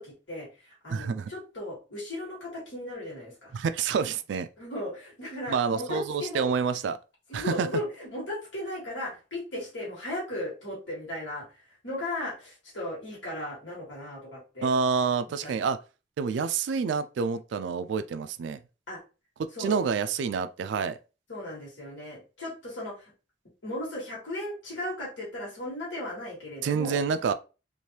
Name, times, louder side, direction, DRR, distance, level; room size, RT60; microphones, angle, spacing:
voice 1, 0.0-3.5 4.6-6.5 7.3-14.7 15.4-15.6 18.9-19.0 19.5-19.7 21.3-23.1 23.6-27.0, left 1 dB, 80° left, 1.5 m, -36 dB
voice 2, 0.9-1.3 3.5-4.5 5.5-7.0 7.3-7.7 14.6-15.8 16.2-18.6 19.6-21.0 26.6-27.3, right 5 dB, 70° right, 0.3 m, -28 dB
3.2 x 2.5 x 2.8 m
head